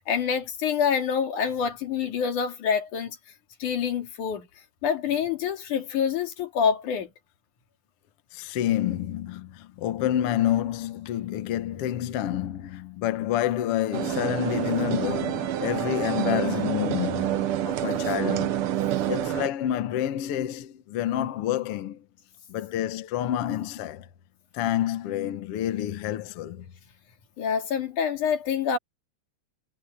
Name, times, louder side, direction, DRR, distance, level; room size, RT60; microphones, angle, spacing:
voice 1, 0.0-3.2 3.6-4.5 4.8-7.1 27.4-28.8, left 7 dB, 85° left, 3.9 m, -26 dB
voice 2, 8.3-18.5 19.1-22.0 22.5-24.1 24.5-26.7, left 12 dB, 60° left, 1.8 m, -28 dB
sound 1, 13.9-19.5, right 11 dB, 70° right, 1.3 m, -27 dB
omnidirectional pair, 3.4 m